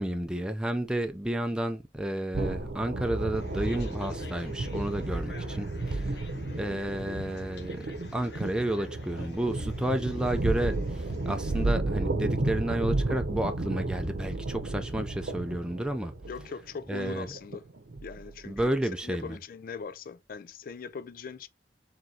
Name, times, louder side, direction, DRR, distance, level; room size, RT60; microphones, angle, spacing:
voice 1, 0.0-6.2 6.6-7.9 8.1-16.1 16.9-17.3 18.5-19.4, right 1 dB, 5° right, 0.4 m, -31 dB
sound 1, 2.3-18.5, right 2 dB, 65° right, 0.8 m, -33 dB
sound 2, 3.3-11.7, left 1 dB, 70° left, 1.1 m, -45 dB
voice 2, 16.3-17.6 18.0-18.7 19.0-21.5, left 5 dB, 55° left, 0.4 m, -40 dB
4.9 x 3.6 x 2.8 m
head